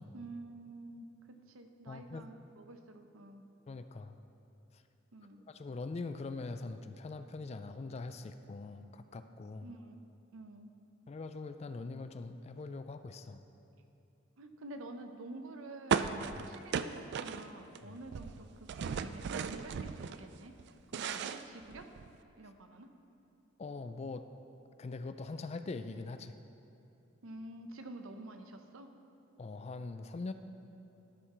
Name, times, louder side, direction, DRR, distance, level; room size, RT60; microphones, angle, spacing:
voice 1, 0.1-3.4 5.1-5.4 9.6-10.0 10.3-10.7 14.4-20.6 20.9-21.9 22.4-22.9 27.2-28.9, right 2 dB, 80° right, 7 dB, 0.7 m, -49 dB
voice 2, 1.9-2.3 3.7-4.2 5.5-9.7 11.1-13.4 16.4-16.5 17.8-18.0 23.6-24.3 24.8-26.4 29.4-30.3, left 3 dB, 30° left, 10 dB, 0.3 m, -42 dB
sound 1, 15.9-17.8 18.0-20.2 20.6-22.2, right 6 dB, 55° right, 0.3 m, -36 dB
12.0 x 4.8 x 5.5 m, 2.9 s
head